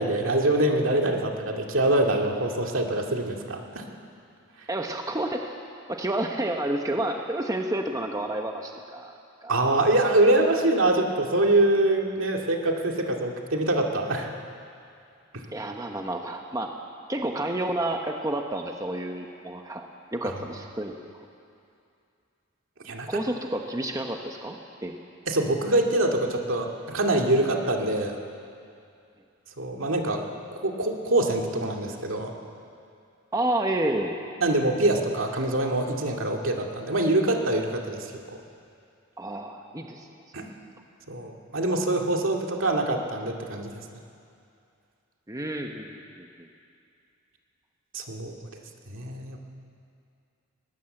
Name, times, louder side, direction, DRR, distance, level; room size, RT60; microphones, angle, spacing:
voice 1, 0.0-3.8 9.5-14.3 15.3-15.4 22.8-23.2 25.3-28.2 29.6-30.2 30.5-32.3 34.4-38.4 40.3-40.5 41.1-43.7 47.9-48.5 48.9-49.4, right 1 dB, 70° right, 2 dB, 2.2 m, -24 dB
voice 2, 4.7-5.6 5.9-9.1 9.4-9.6 15.5-16.7 17.1-19.9 20.1-21.0 23.1-24.9 33.3-34.2 39.2-40.1 45.3-46.5, right 1 dB, 15° right, 3 dB, 1.0 m, -30 dB
20.5 x 19.0 x 7.8 m, 2.5 s
head